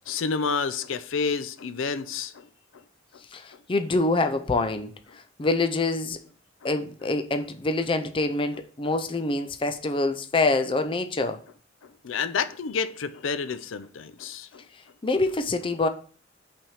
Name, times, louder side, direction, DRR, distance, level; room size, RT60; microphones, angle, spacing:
voice 1, 0.1-2.5 12.0-14.6, left 5 dB, 85° left, 0.5 m, -29 dB
voice 2, 3.3-4.9 5.4-6.2 6.6-11.4 15.0-15.9, left 2 dB, 25° left, 0.4 m, -25 dB
5.6 x 3.5 x 5.6 m
head